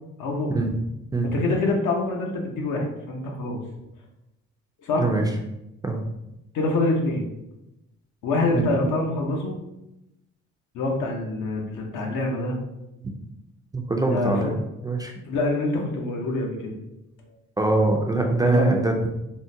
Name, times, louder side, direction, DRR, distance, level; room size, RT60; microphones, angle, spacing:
voice 1, 0.2-0.5 1.2-3.6 4.8-5.1 6.5-7.3 8.2-9.6 10.7-12.6 14.1-14.5 15.2-16.7 18.4-18.8, left 2 dB, 80° left, 1 dB, 0.8 m, -25 dB
voice 2, 13.7-14.6 14.8-15.1 17.6-19.1, right 2 dB, 15° right, 2 dB, 0.3 m, -23 dB
3.7 x 2.1 x 2.6 m, 0.91 s
cardioid pair, 90°, 30 cm